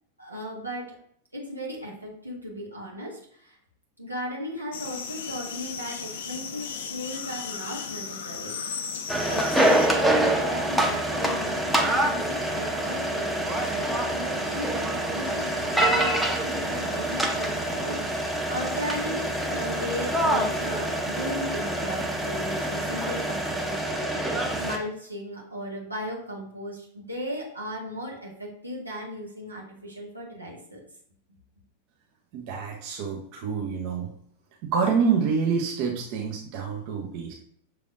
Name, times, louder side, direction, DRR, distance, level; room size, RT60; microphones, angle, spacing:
voice 1, 0.2-1.0 1.3-3.6 4.0-8.8 9.3-30.8, equal, 85° right, -2 dB, 1.3 m, -36 dB
sound 1, 4.7-9.9, left 6 dB, 55° left, 0.5 m, -36 dB
sound 2, 9.1-24.8, right 1 dB, ahead, 0.7 m, -26 dB
voice 2, 32.3-34.1 34.6-37.3, right 6 dB, 45° right, 0 dB, 0.7 m, -27 dB
6.0 x 3.3 x 2.5 m, 0.65 s
figure-of-eight pair, 90°, 0 cm